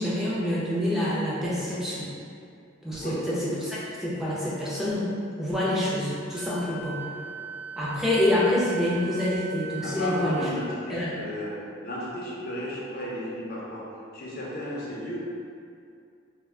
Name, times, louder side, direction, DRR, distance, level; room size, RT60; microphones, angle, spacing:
voice 1, 0.0-2.1 2.8-5.1 5.4-7.1 7.8-10.5 10.9-11.1, left 1 dB, ahead, -9 dB, 0.6 m, -27 dB
Wind instrument woodwind instrument, 6.3-10.5, right 5 dB, 70° right, 0.4 m, -40 dB
voice 2, 9.8-11.5 11.8-13.9 14.1-15.2, left 1 dB, 50° left, -5 dB, 0.5 m, -34 dB
2.4 x 2.2 x 3.5 m, 2.4 s
head